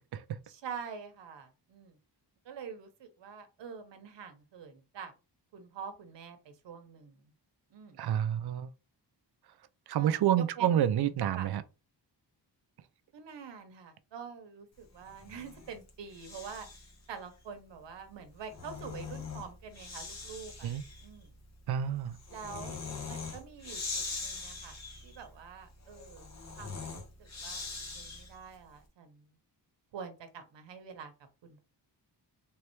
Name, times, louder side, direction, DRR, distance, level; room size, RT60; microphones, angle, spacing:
voice 1, 0.4-2.0 2.4-5.1 5.5-7.3 7.7-8.0 9.9-10.1 10.5-10.8 11.4-11.5 13.1-16.7 17.1-20.7 21.0-21.3 22.3-22.8 23.1-24.8 25.0-26.3 26.6-29.4 29.9-31.1 31.4-31.6, right 6 dB, 85° right, 1.0 m, -46 dB
voice 2, 8.0-8.7 9.9-11.6 20.6-20.8 21.7-22.2, right 10 dB, 65° right, 0.5 m, -28 dB
Breathing, 15.0-17.0 18.2-28.5, left 4 dB, 40° left, 1.1 m, -43 dB
3.4 x 3.3 x 3.0 m
wide cardioid pair, 145°, 42 cm